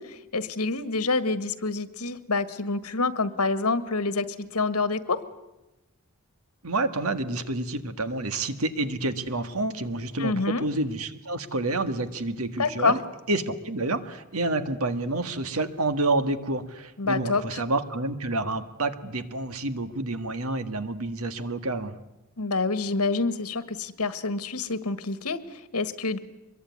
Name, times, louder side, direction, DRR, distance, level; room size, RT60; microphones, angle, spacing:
voice 1, 0.0-4.3 4.5-5.2 10.2-10.6 12.6-13.0 17.0-17.6 22.4-26.2, left 3 dB, 90° left, 13 dB, 1.7 m, -27 dB
voice 2, 6.6-13.0 13.3-22.0, right 2 dB, 75° right, 10 dB, 1.8 m, -29 dB
24.5 x 22.5 x 9.5 m, 0.98 s
head